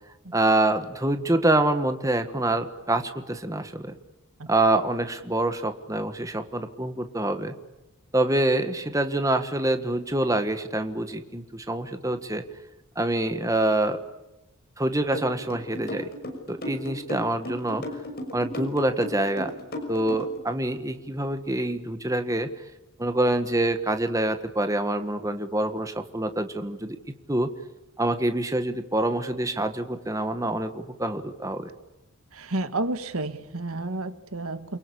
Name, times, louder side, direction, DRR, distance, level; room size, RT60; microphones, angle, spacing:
voice 1, 0.3-3.9 4.5-7.5 8.1-12.4 12.9-14.0 14.8-16.1 16.5-17.8 18.3-19.5 19.9-22.5 23.0-27.0 27.3-27.5 28.0-31.7, right 1 dB, 15° right, 8 dB, 1.5 m, -26 dB
sound 1, 15.1-20.4, left 1 dB, 45° left, 6.2 m, -34 dB
voice 2, 32.3-34.8, right 2 dB, 75° right, 11 dB, 1.7 m, -31 dB
29.0 x 23.0 x 8.6 m, 0.99 s
head